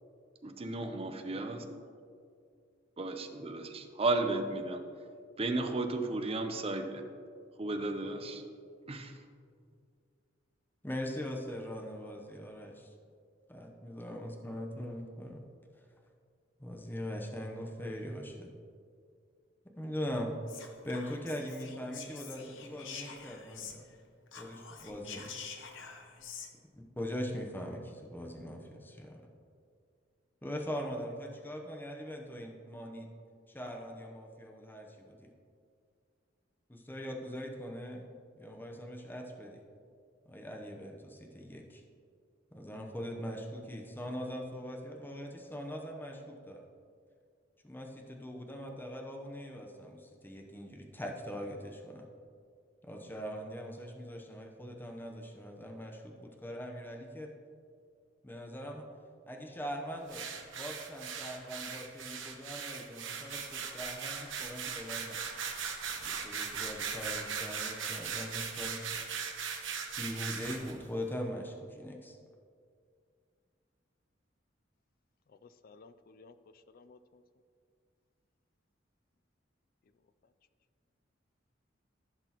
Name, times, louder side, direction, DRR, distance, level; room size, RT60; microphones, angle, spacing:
voice 1, 0.4-1.7 3.0-4.8 5.4-7.0 7.6-8.4 8.9-9.1, right 2 dB, 30° right, 6 dB, 0.7 m, -34 dB
voice 2, 10.8-12.9 13.5-15.4 16.6-18.5 19.8-20.3 20.8-23.8 24.4-25.3 27.0-29.2 30.4-33.1 33.5-35.3 36.7-38.1 38.4-39.6 40.3-41.8 42.5-46.6 47.6-52.1 52.8-57.3 58.2-58.8 59.3-65.2 66.0-69.0 70.0-72.2, equal, 10° left, 1 dB, 0.8 m, -41 dB
Whispering, 20.5-24.0 24.3-26.5, left 6 dB, 85° left, 0.9 m, -47 dB
sound 1, 60.1-70.7, right 6 dB, 85° right, 1.1 m, -39 dB
voice 3, 75.3-77.2, left 4 dB, 50° left, 12 dB, 0.4 m, -57 dB
15.0 x 6.1 x 3.0 m, 2.2 s
head